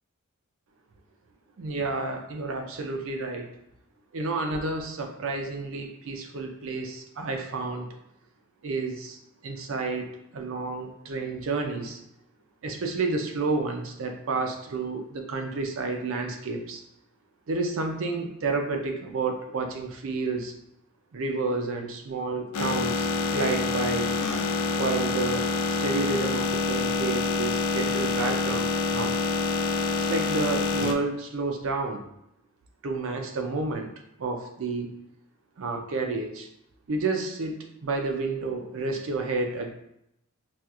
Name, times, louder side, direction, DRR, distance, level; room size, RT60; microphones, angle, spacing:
voice 1, 1.6-3.5 4.1-7.9 8.6-12.0 12.6-16.8 17.5-20.5 21.1-24.1 24.8-25.5 25.8-29.2 30.0-32.1 32.8-33.9 34.2-34.9 35.6-36.5 36.9-39.7, right 3 dB, 60° right, 4 dB, 0.5 m, -30 dB
sound 1, 22.5-30.9, left 3 dB, 75° left, 0.4 m, -26 dB
4.2 x 2.4 x 2.3 m, 0.79 s
head